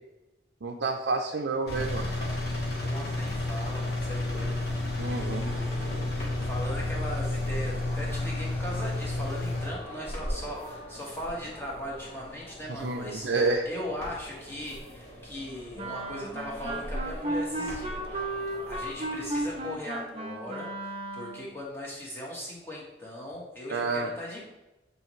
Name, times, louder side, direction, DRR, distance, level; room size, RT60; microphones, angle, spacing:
voice 1, 0.6-2.2 5.0-5.5 12.7-13.7 23.7-24.1, right 3 dB, 80° right, 1 dB, 0.5 m, -29 dB
Engine, 1.7-9.7, left 2 dB, 65° left, 1.6 m, -31 dB
voice 2, 2.7-13.3 13.6-18.2 18.7-24.4, left 1 dB, 15° left, -4 dB, 1.5 m, -39 dB
sound 1, 3.2-19.7, equal, 35° left, 1.8 m, -42 dB
Wind instrument woodwind instrument, 15.8-21.5, right 1 dB, 35° right, 0.6 m, -34 dB
8.1 x 4.1 x 3.1 m, 0.99 s
head